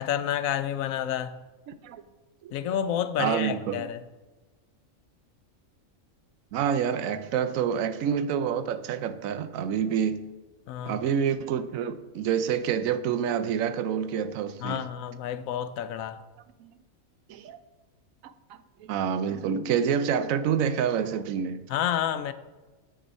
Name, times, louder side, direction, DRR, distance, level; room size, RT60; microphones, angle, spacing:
voice 1, 0.0-1.3 2.5-4.0 10.7-11.0 14.6-16.2 21.7-22.3, left 10 dB, 85° left, 1.0 m, -29 dB
voice 2, 1.7-2.0 2.4-2.5 3.2-3.9 6.5-10.3 10.8-14.8 16.6-16.7 17.3-17.6 18.2-18.3 18.8-21.6, right 8 dB, 80° right, 1.0 m, -27 dB
10.0 x 7.9 x 4.0 m
omnidirectional pair, 1.4 m